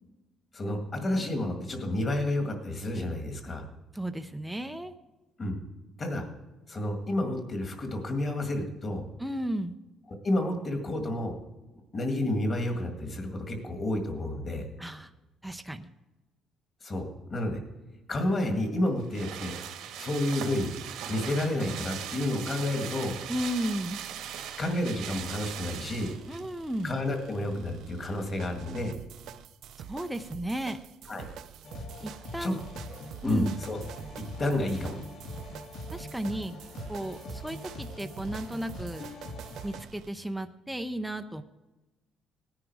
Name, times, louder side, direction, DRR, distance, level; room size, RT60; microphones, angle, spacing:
voice 1, 0.5-3.7 5.4-5.6 6.0-6.3 6.7-9.1 10.1-11.4 11.9-14.6 16.8-17.6 18.1-19.6 20.0-20.7 21.1-23.2 24.6-26.1 26.8-28.9 31.1-31.3 32.4-32.6 33.2-33.8 34.2-35.0, left 1 dB, 25° left, 4 dB, 2.0 m, -30 dB
voice 2, 3.9-4.9 9.2-9.7 14.8-15.1 15.4-15.9 23.3-24.0 26.3-27.0 29.9-30.8 32.0-32.6 33.2-33.6 35.9-36.6 36.9-39.0 39.6-41.4, right 1 dB, 5° right, 7 dB, 0.5 m, -34 dB
sound 1, 18.3-26.5 26.8-26.9, right 9 dB, 90° right, 1.7 m, -39 dB
sound 2, 23.3-40.1, right 9 dB, 65° right, 0.6 m, -47 dB
sound 3, 31.6-39.8, left 1 dB, 70° left, 3.3 m, -43 dB
17.5 x 9.9 x 4.7 m, 1.1 s
cardioid pair, 160°, 0 cm